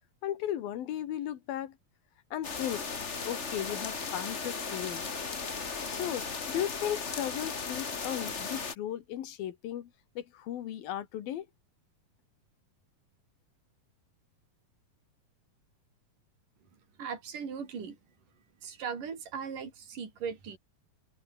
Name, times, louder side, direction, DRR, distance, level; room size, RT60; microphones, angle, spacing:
voice 1, 0.2-1.8 2.3-2.9 3.2-5.0 5.9-9.9 10.2-11.5, left 11 dB, 75° left, 3.5 m, -36 dB
sound 1, 2.4-8.8, left 4 dB, 40° left, 1.0 m, -36 dB
voice 2, 17.0-18.0 18.6-20.6, right 6 dB, 60° right, 6.0 m, -38 dB
omnidirectional pair, 4.3 m